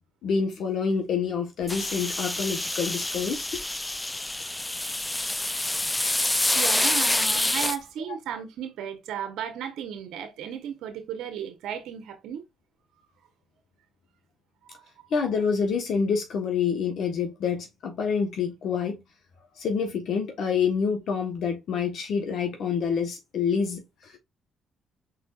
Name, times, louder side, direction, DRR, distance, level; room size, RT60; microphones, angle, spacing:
voice 1, 0.2-3.6 8.1-8.2 15.1-19.0 19.6-24.2, left 6 dB, 70° left, 1.3 m, -27 dB
sound 1, 1.7-7.8, left 1 dB, 15° left, 0.4 m, -27 dB
voice 2, 6.5-12.4 14.7-15.1, right 9 dB, 80° right, 1.1 m, -35 dB
4.8 x 4.3 x 2.4 m
cardioid pair, 90°, 0 cm